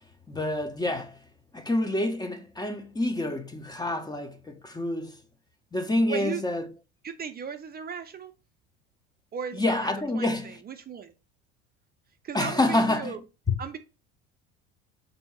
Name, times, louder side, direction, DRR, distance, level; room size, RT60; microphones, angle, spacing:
voice 1, 0.3-1.2 1.5-5.2 5.7-6.7 9.5-10.6 12.3-13.1 13.5-13.6, left 2 dB, 10° left, 0.6 m, -27 dB
voice 2, 6.1-6.4 7.0-8.3 9.3-11.1 12.2-13.2 13.6-13.8, right 7 dB, 30° right, 0.6 m, -36 dB
3.4 x 2.7 x 4.6 m
hypercardioid pair, 75°, 33 cm